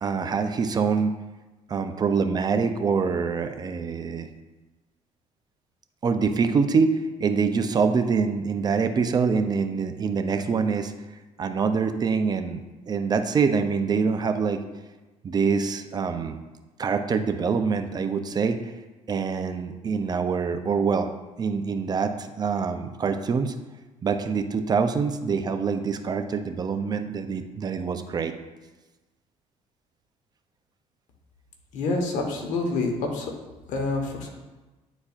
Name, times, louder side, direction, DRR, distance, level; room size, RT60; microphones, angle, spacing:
voice 1, 0.0-1.1 1.7-4.3 6.0-10.9 11.4-12.6 12.9-14.6 15.2-16.4 16.8-18.7 19.1-21.1 21.4-23.5 24.0-28.3, right 5 dB, 30° right, 8 dB, 0.4 m, -25 dB
voice 2, 31.7-33.3 33.7-34.3, left 3 dB, 75° left, 2 dB, 1.1 m, -27 dB
9.7 x 4.1 x 2.4 m, 1.2 s
cardioid pair, 115°, 13 cm